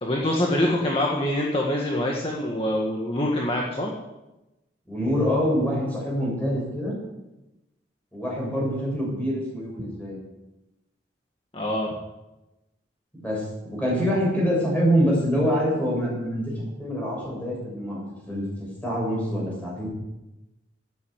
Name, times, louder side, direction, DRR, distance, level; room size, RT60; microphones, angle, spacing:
voice 1, 0.0-3.9 11.5-11.9, left 1 dB, 30° left, -2 dB, 1.8 m, -25 dB
voice 2, 4.9-7.0 8.1-10.2 13.2-16.5 16.8-18.4 18.8-19.9, equal, 10° left, -4 dB, 6.9 m, -25 dB
12.5 x 9.9 x 8.2 m, 0.98 s
head